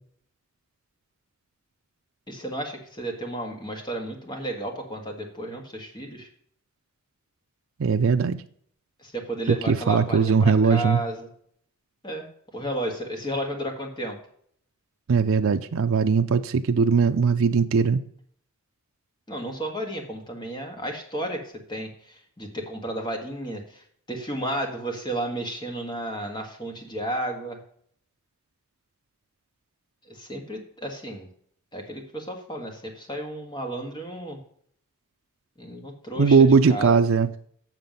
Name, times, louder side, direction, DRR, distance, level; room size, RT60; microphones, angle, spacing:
voice 1, 2.3-6.3 9.0-11.3 12.0-12.3 12.5-14.1 19.3-27.6 30.1-31.3 31.7-34.4 35.6-36.4 36.7-36.9, right 1 dB, 20° left, 1.7 m, -33 dB
voice 2, 7.8-8.4 9.7-11.0 15.1-18.0 36.2-37.3, right 5 dB, 65° right, 0.5 m, -19 dB
7.5 x 6.8 x 5.2 m
head